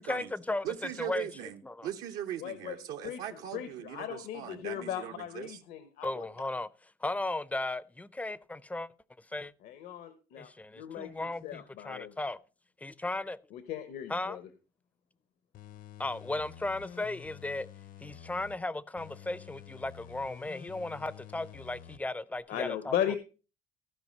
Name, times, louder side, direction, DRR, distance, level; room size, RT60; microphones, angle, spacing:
voice 1, 0.0-0.7 1.0-1.3 1.6-1.9 6.0-6.7 7.0-8.9 9.3-9.5 10.4-12.4 12.8-13.4 14.1-14.4 16.0-17.7 18.0-23.1, left 2 dB, 10° left, 0.4 m, -36 dB
voice 2, 0.6-5.6, right 10 dB, 80° right, 0.9 m, -40 dB
voice 3, 2.4-2.8 3.0-6.3 9.6-12.1 13.5-14.4 22.5-23.2, left 10 dB, 80° left, 1.0 m, -37 dB
sound 1, 15.5-18.6 19.0-22.0 22.4-22.5, left 10 dB, 60° left, 0.7 m, -49 dB
15.0 x 5.0 x 5.3 m
cardioid pair, 135°, 16 cm